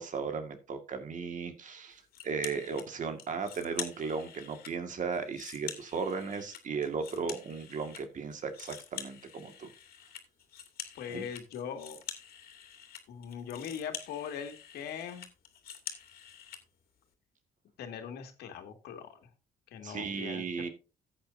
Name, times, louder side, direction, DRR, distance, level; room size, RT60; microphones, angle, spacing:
voice 1, 0.0-9.7 11.1-11.2 19.8-20.7, right 5 dB, 50° right, 7 dB, 2.0 m, -36 dB
sound 1, 2.1-2.9 3.2-4.7 5.1-8.0 8.3-16.6, left 9 dB, 65° left, 2.5 m, -46 dB
voice 2, 10.9-12.0 13.1-15.3 17.8-19.2 19.7-20.4, left 8 dB, 85° left, 5 dB, 2.2 m, -41 dB
14.0 x 8.7 x 2.7 m, 0.32 s
cardioid pair, 105°, 16 cm